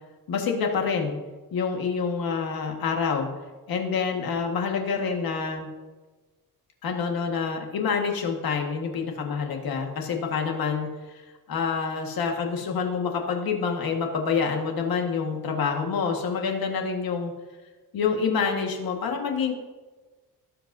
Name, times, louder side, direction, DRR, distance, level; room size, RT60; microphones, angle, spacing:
voice 1, 0.3-1.2 1.5-3.3 3.7-5.7 6.8-11.2 11.5-17.3 17.9-19.5, left 5 dB, 65° left, 2 dB, 1.6 m, -27 dB
18.0 x 7.9 x 2.7 m, 1.3 s
wide cardioid pair, 180°, 38 cm